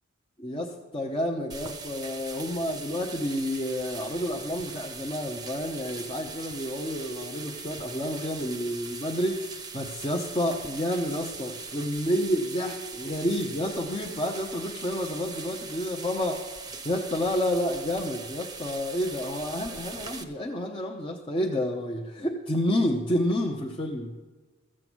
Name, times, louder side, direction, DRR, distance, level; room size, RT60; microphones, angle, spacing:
voice 1, 0.4-16.4 16.8-24.1, left 1 dB, 25° left, -1 dB, 0.8 m, -29 dB
sound 1, 1.5-20.2, right 4 dB, 20° right, 0.8 m, -41 dB
14.0 x 7.6 x 6.2 m, 1.3 s
head